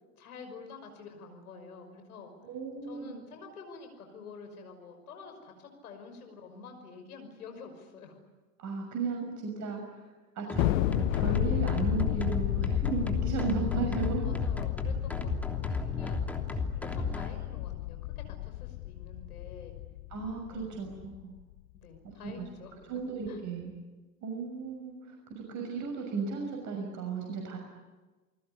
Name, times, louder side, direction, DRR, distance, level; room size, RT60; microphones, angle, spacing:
voice 1, 0.1-2.3 2.9-8.2 14.2-19.7 20.5-20.9 21.7-23.4, left 5 dB, 70° left, 5 dB, 5.9 m, -48 dB
voice 2, 2.4-3.1 8.6-10.0 10.4-14.3 20.1-21.3 22.2-22.4 22.9-23.7 24.2-27.6, right 5 dB, 40° right, 1 dB, 6.3 m, -35 dB
sound 1, 10.5-17.3, left 2 dB, 5° left, 3.1 m, -34 dB
Thunder, 10.6-21.2, left 18 dB, 55° left, 0.8 m, -32 dB
29.0 x 20.0 x 9.9 m, 1.2 s
figure-of-eight pair, 80°, 46 cm